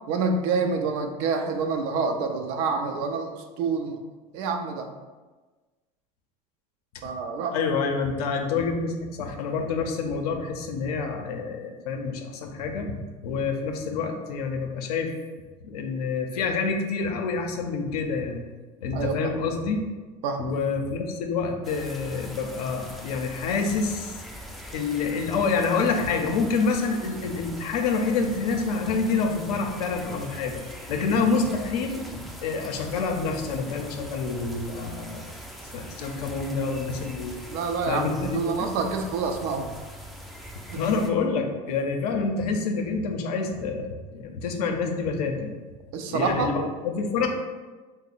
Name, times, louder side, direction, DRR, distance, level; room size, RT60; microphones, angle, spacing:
voice 1, 0.1-4.0 4.3-4.9 7.0-7.6 18.9-19.3 20.2-20.5 37.5-39.7 40.7-40.8 45.9-46.5, right 4 dB, 70° right, 5 dB, 0.5 m, -27 dB
voice 2, 7.5-12.9 13.2-15.1 15.6-18.4 18.8-19.8 20.4-24.2 24.7-30.6 30.9-35.3 35.7-37.4 37.9-38.7 40.7-45.6 46.1-47.3, left 4 dB, 90° left, 4 dB, 0.5 m, -27 dB
sound 1, 21.6-41.1, right 1 dB, ahead, 0.3 m, -42 dB
2.8 x 2.0 x 4.0 m, 1.3 s
supercardioid pair, 100°, 19 cm